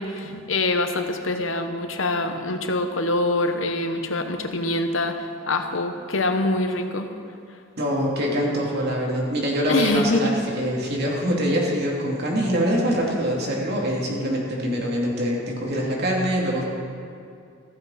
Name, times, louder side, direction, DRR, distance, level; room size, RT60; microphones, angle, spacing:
voice 1, 0.0-7.1 9.7-10.4, left 2 dB, 85° left, 6 dB, 1.1 m, -25 dB
voice 2, 7.8-16.6, equal, 55° right, -3 dB, 2.9 m, -24 dB
15.0 x 15.0 x 4.2 m, 2.4 s
head